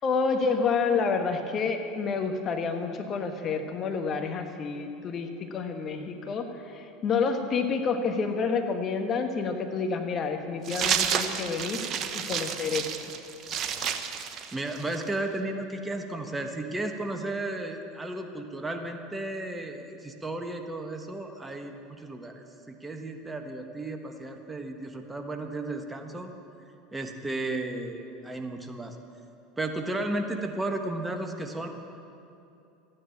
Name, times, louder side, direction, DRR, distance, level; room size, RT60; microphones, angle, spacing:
voice 1, 0.0-11.8 12.1-13.1, left 5 dB, 40° left, 5 dB, 1.4 m, -29 dB
sound 1, 10.7-15.1, right 8 dB, 45° right, 1.0 m, -30 dB
voice 2, 14.5-26.3 26.9-29.0 29.6-31.7, right 2 dB, 15° right, 4 dB, 1.3 m, -34 dB
14.5 x 10.0 x 7.3 m, 2.7 s
hypercardioid pair, 80°, 0 cm